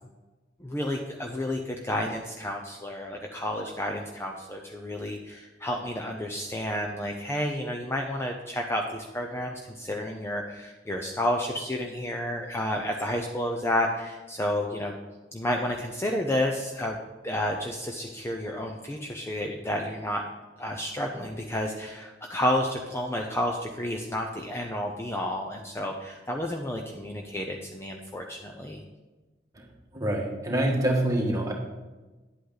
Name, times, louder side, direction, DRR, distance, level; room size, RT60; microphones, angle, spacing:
voice 1, 0.6-14.9 15.3-17.0 17.2-20.2 20.6-28.8, left 1 dB, 15° left, 1 dB, 0.6 m, -31 dB
voice 2, 29.9-31.5, right 1 dB, 20° right, -1 dB, 1.6 m, -25 dB
10.0 x 8.2 x 4.0 m, 1.2 s
head